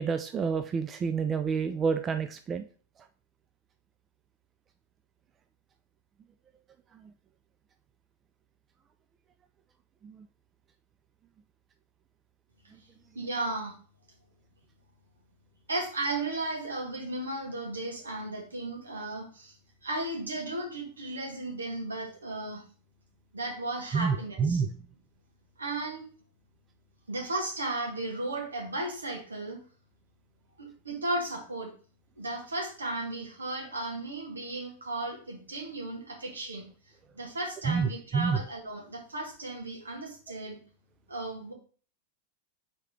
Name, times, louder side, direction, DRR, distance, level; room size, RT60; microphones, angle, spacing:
voice 1, 0.0-2.6 10.0-10.2 23.9-24.7 37.7-38.4, right 5 dB, 25° right, 8 dB, 0.4 m, -28 dB
voice 2, 13.1-13.7 15.7-19.6 19.8-22.6 23.3-24.6 25.6-26.1 27.1-29.6 30.6-31.7 32.2-36.7 37.2-40.6 41.1-41.5, right 2 dB, 75° right, -1 dB, 2.3 m, -35 dB
4.8 x 4.4 x 5.0 m, 0.40 s
figure-of-eight pair, 90°, 0 cm